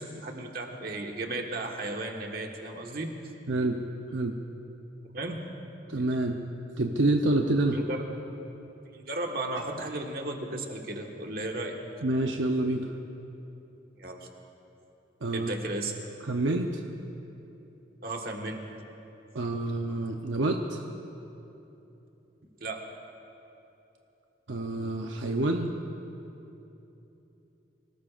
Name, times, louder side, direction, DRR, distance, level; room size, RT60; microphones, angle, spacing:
voice 1, 0.0-3.1 5.1-5.5 7.7-8.0 8.9-11.8 14.0-14.3 15.3-15.9 18.0-18.6 22.6-22.9, right 2 dB, 50° right, 1 dB, 1.5 m, -35 dB
voice 2, 3.5-3.8 4.1-4.4 5.9-6.4 6.8-7.8 12.0-12.9 15.2-15.5 16.3-16.8 19.3-20.8 24.5-25.7, right 2 dB, 80° right, 3 dB, 0.8 m, -27 dB
26.0 x 18.5 x 2.5 m, 3.0 s
head